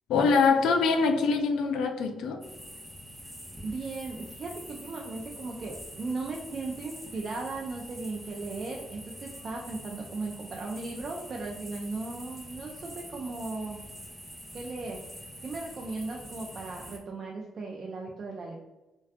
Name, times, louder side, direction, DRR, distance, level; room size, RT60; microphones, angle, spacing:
voice 1, 0.1-2.4, left 4 dB, 80° left, 6 dB, 0.3 m, -24 dB
sound 1, 2.4-17.0, equal, ahead, 0.6 m, -45 dB
voice 2, 3.6-13.8 14.5-15.1 15.4-18.6, right 3 dB, 45° right, -1 dB, 0.3 m, -37 dB
2.3 x 2.2 x 2.5 m, 1.1 s
cardioid pair, 90°, 0 cm